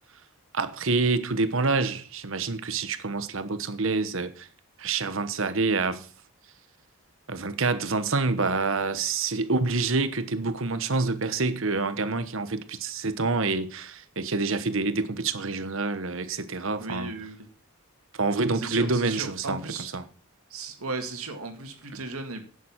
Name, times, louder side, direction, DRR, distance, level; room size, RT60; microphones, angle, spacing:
voice 1, 0.5-4.5 4.8-6.1 7.3-17.1 18.1-20.1, right 3 dB, 65° right, 1.1 m, -27 dB
voice 2, 16.8-17.5 18.5-19.9 20.5-22.4, right 3 dB, 85° right, 2.2 m, -36 dB
11.0 x 7.3 x 5.7 m
head